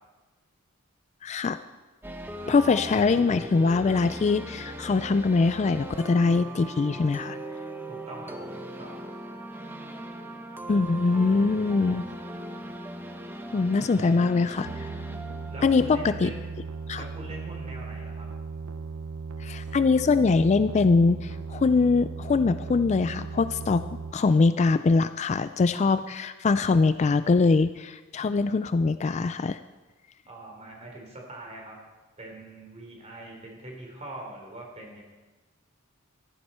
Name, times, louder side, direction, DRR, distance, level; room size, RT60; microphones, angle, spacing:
voice 1, 1.2-1.6 2.5-7.4 10.7-12.1 13.5-14.9 15.6-16.3 16.9-17.0 19.4-23.8 24.1-29.6, left 4 dB, 30° left, 12 dB, 0.3 m, -23 dB
sound 1, 2.0-16.9, right 1 dB, 10° right, 0.9 m, -39 dB
voice 2, 7.9-9.0 15.5-16.3 16.9-18.3 30.3-31.8 32.2-35.0, right 1 dB, 30° right, 0 dB, 3.6 m, -43 dB
sound 2, 14.6-24.1, right 4 dB, 85° right, 0.6 m, -37 dB
15.0 x 13.0 x 4.4 m, 1.2 s
head